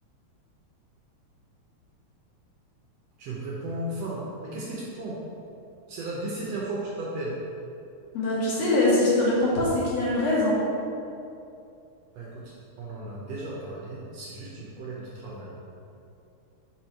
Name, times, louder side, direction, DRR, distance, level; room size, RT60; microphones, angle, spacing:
voice 1, 3.2-5.2 5.9-7.4 12.1-15.6, right 2 dB, 70° right, -5 dB, 1.7 m, -35 dB
voice 2, 8.1-10.6, left 2 dB, 60° left, -7 dB, 2.2 m, -23 dB
5.2 x 4.4 x 4.4 m, 2.6 s
omnidirectional pair, 3.4 m